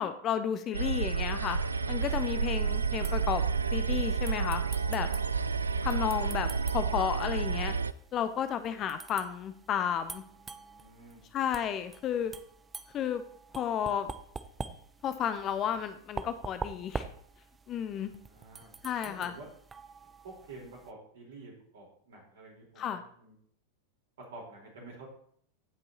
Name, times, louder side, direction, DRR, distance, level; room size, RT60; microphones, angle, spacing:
voice 1, 0.0-1.6 1.9-3.4 3.7-4.6 4.9-5.1 5.8-6.5 6.7-7.7 8.1-10.2 11.3-12.3 12.9-13.2 13.6-14.1 15.0-17.0 17.7-18.1 18.8-19.3 22.8-23.0, left 9 dB, 30° left, 11 dB, 0.6 m, -32 dB
sound 1, 0.7-7.9, right 5 dB, 75° right, 0.3 m, -30 dB
voice 2, 2.0-2.3 10.3-11.2 13.8-13.9 17.9-18.7 19.0-19.5 20.2-23.3 24.3-25.1, right 3 dB, 60° right, -2 dB, 3.8 m, -50 dB
sound 2, 2.1-20.9, right 4 dB, 15° right, 0.5 m, -46 dB
16.0 x 5.4 x 2.8 m, 0.62 s
figure-of-eight pair, 90°, 0 cm